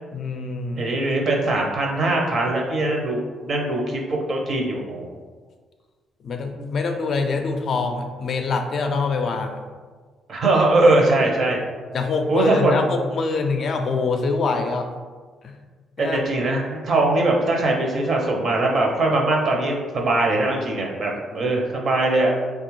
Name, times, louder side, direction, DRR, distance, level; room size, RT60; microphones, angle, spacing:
voice 1, 0.1-0.9 6.2-9.6 11.9-14.9 15.4-15.5 16.0-16.2 21.3-21.5, left 4 dB, 55° left, 4 dB, 0.4 m, -24 dB
voice 2, 0.8-5.2 10.3-11.6 12.3-12.8 16.0-22.4, right 2 dB, 55° right, 0 dB, 0.7 m, -21 dB
3.2 x 2.3 x 3.1 m, 1.5 s
cardioid pair, 90°, 0 cm